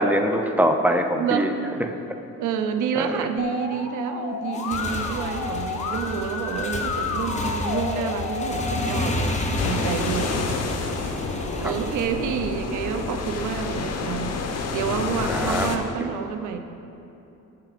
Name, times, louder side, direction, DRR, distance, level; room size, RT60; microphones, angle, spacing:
voice 1, 0.0-1.5 1.8-1.9 3.0-3.3 11.6-11.7 15.3-15.7, equal, 5° right, 5 dB, 0.6 m, -23 dB
voice 2, 2.4-10.5 11.0-14.3 14.7-16.6, right 7 dB, 80° right, 8 dB, 0.7 m, -29 dB
Musical instrument, 3.4-8.9, left 5 dB, 85° left, 0.8 m, -31 dB
Motorcycle / Engine, 4.4-12.1, left 2 dB, 25° left, 1.0 m, -30 dB
sound 1, 9.6-15.8, left 4 dB, 55° left, 0.9 m, -29 dB
12.5 x 4.7 x 5.0 m, 2.9 s
cardioid pair, 90°, 30 cm